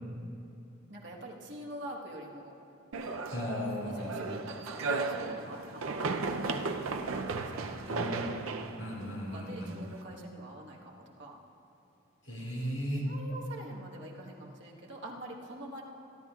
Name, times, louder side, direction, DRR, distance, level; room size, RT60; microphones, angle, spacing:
voice 1, 0.9-2.6 3.8-6.1 6.5-7.6 7.9-8.1 9.3-11.4 13.0-15.8, right 1 dB, 55° right, -2 dB, 1.4 m, -45 dB
sound 1, 2.9-10.0, right 3 dB, 80° right, 0.6 m, -35 dB
voice 2, 3.3-4.2 7.9-8.4 8.8-9.7 12.2-13.1, equal, 60° left, -2 dB, 2.3 m, -36 dB
26.0 x 10.5 x 2.4 m, 2.8 s
head